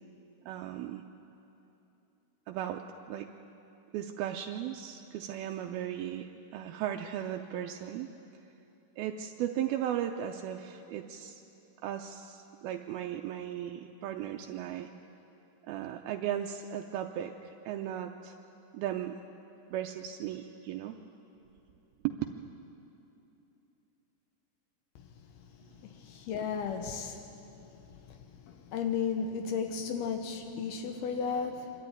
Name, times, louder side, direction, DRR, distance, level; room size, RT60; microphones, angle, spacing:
voice 1, 0.5-1.0 2.5-3.3 3.9-8.1 9.0-11.4 11.8-14.9 15.7-18.4 18.7-19.2 19.7-21.0 22.0-22.1, right 11 dB, 85° right, 4 dB, 2.2 m, -36 dB
voice 2, 26.0-27.2 28.5-31.7, left 6 dB, 75° left, 6 dB, 2.6 m, -34 dB
25.0 x 13.0 x 9.6 m, 2.9 s
omnidirectional pair, 5.0 m